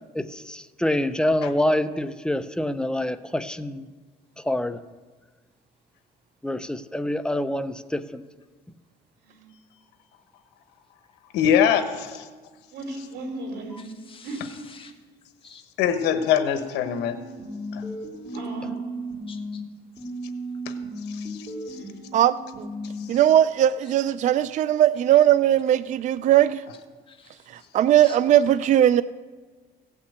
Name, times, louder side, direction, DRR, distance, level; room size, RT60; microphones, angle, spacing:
voice 1, 0.2-3.8 4.5-4.8 6.4-8.2, left 1 dB, 5° left, 11 dB, 0.6 m, -26 dB
voice 2, 11.3-12.3 15.8-17.2 17.7-17.8 20.7-20.8 21.1-21.4 21.7-21.8, left 8 dB, 85° left, 8 dB, 1.2 m, -23 dB
voice 3, 12.7-13.8 14.2-14.4 18.3-18.7 21.7-21.9, right 2 dB, 75° right, 3 dB, 3.3 m, -35 dB
voice 4, 13.8-14.9 15.4-15.6 19.3-19.6 27.1-27.3 28.0-28.1, left 5 dB, 30° left, 4 dB, 1.5 m, -48 dB
sound 1, 16.5-19.5 20.0-23.0, right 1 dB, 20° right, 4.7 m, -35 dB
voice 5, 22.1-22.7 23.1-26.6 27.7-29.0, right 11 dB, 45° right, 15 dB, 0.4 m, -19 dB
16.0 x 5.8 x 8.1 m, 1.4 s
cardioid pair, 110°, 17 cm